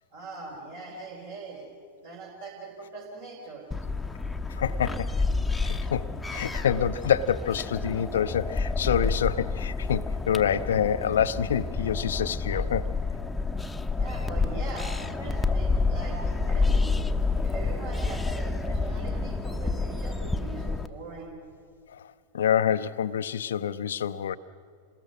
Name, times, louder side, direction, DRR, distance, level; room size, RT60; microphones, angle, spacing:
voice 1, 0.1-1.7 2.0-3.7 13.9-17.0 17.3-21.4, right 3 dB, 65° right, -2 dB, 3.8 m, -41 dB
sound 1, 3.7-20.9, left 3 dB, 5° left, 0.8 m, -29 dB
voice 2, 4.5-5.1 5.6-12.9 21.9-24.4, left 8 dB, 65° left, 13 dB, 0.6 m, -27 dB
27.5 x 20.5 x 6.3 m, 2.1 s
figure-of-eight pair, 90°, 0 cm